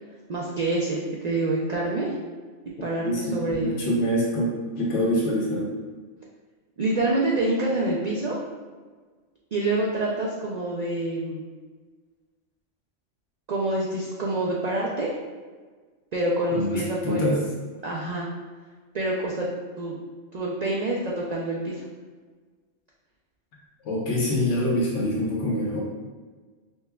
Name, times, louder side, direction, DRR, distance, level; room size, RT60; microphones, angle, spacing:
voice 1, 0.3-2.1 2.8-3.8 6.8-8.4 9.5-11.5 13.5-15.1 16.1-17.3 17.8-18.3 18.9-19.5 19.8-20.0 20.3-21.9, right 2 dB, 80° right, -4 dB, 0.3 m, -26 dB
voice 2, 3.0-5.7 16.5-17.4 23.8-25.8, left 1 dB, 70° left, -3 dB, 1.1 m, -25 dB
5.4 x 2.2 x 2.2 m, 1.4 s
omnidirectional pair, 1.3 m